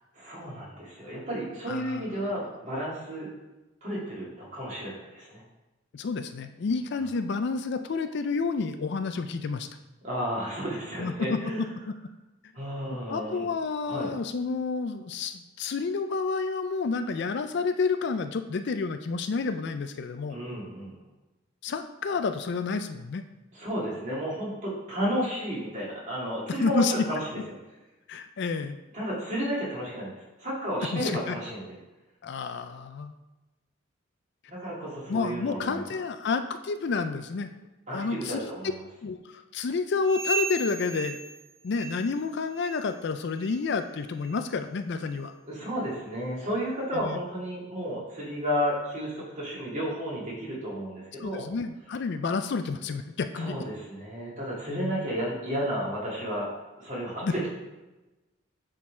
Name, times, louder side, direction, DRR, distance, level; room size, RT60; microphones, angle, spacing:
voice 1, 0.1-3.3 3.8-5.4 10.0-11.6 12.5-13.4 13.8-14.1 20.3-21.0 23.5-27.4 28.9-30.1 30.4-31.8 34.5-35.8 37.9-38.7 45.5-51.5 53.4-56.5 56.8-57.5, equal, 35° right, -5 dB, 2.3 m, -32 dB
voice 2, 1.7-2.1 5.9-9.7 11.0-11.4 11.9-12.0 13.1-20.4 21.6-23.2 26.6-26.9 28.1-28.8 30.9-31.4 32.2-33.1 35.1-37.5 37.9-38.5 39.0-41.2 41.6-45.3 46.9-47.2 51.2-53.6 54.7-55.1 57.2-57.3, left 4 dB, 55° left, 9 dB, 0.4 m, -30 dB
sound 1, 40.0-42.2 42.5-42.9 43.3-43.6 44.2-44.4 45.0-45.1 45.9-46.0, right 4 dB, 10° right, 1.0 m, -35 dB
8.5 x 3.9 x 4.3 m, 1.1 s
head